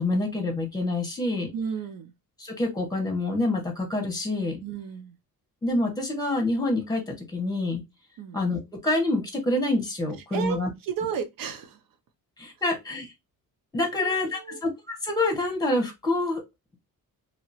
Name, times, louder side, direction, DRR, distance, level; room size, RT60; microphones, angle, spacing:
voice 1, 0.0-1.5 2.4-4.6 5.6-7.8 8.3-10.7 12.4-13.1 13.7-16.4, left 2 dB, 10° left, 1.2 m, -27 dB
voice 2, 1.5-2.1 4.6-5.2 8.2-8.4 10.3-11.8 13.9-14.6, right 7 dB, 75° right, 0.6 m, -33 dB
2.9 x 2.8 x 2.8 m
wide cardioid pair, 150°, 35 cm